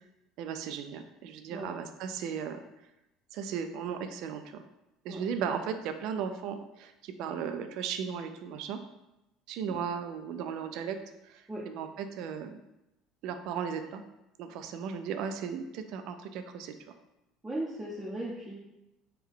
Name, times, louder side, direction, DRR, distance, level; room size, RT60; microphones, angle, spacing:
voice 1, 0.4-2.6 3.3-4.6 5.0-8.8 9.5-11.0 11.3-12.6 13.2-14.0 14.4-16.7, right 7 dB, 65° right, 8 dB, 0.3 m, -36 dB
voice 2, 17.4-18.6, right 1 dB, 10° right, -6 dB, 0.6 m, -37 dB
3.4 x 2.2 x 3.6 m, 0.92 s
supercardioid pair, 105°, 0 cm